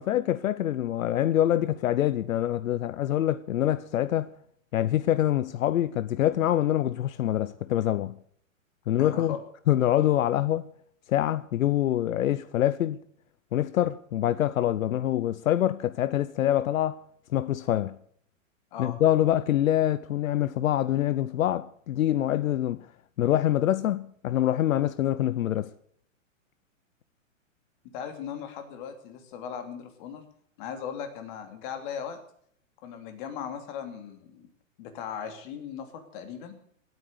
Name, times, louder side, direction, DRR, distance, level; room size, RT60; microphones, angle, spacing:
voice 1, 0.0-4.3 4.7-8.2 8.9-9.4 9.7-10.7 11.1-13.0 13.5-17.0 17.3-17.9 18.8-22.9 23.2-25.7, left 12 dB, 80° left, 0.8 m, -25 dB
voice 2, 9.0-9.4 18.7-19.0 27.9-30.2 30.6-32.2 32.8-34.5 34.8-36.5, left 8 dB, 40° left, 2.9 m, -38 dB
18.0 x 9.4 x 6.6 m
hypercardioid pair, 155°, 40 cm